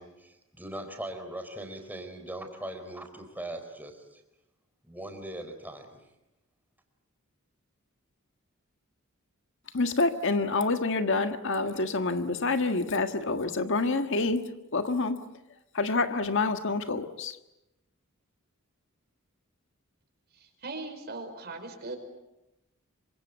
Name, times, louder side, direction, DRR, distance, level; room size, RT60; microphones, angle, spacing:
voice 1, 0.0-4.2 4.8-6.0, right 1 dB, 10° right, 5 dB, 4.4 m, -40 dB
voice 2, 9.7-14.4 14.7-15.2 15.7-17.4, left 3 dB, 65° left, 8 dB, 1.6 m, -27 dB
voice 3, 20.3-22.0, right 3 dB, 50° right, 6 dB, 5.1 m, -39 dB
27.0 x 25.5 x 8.3 m, 0.92 s
head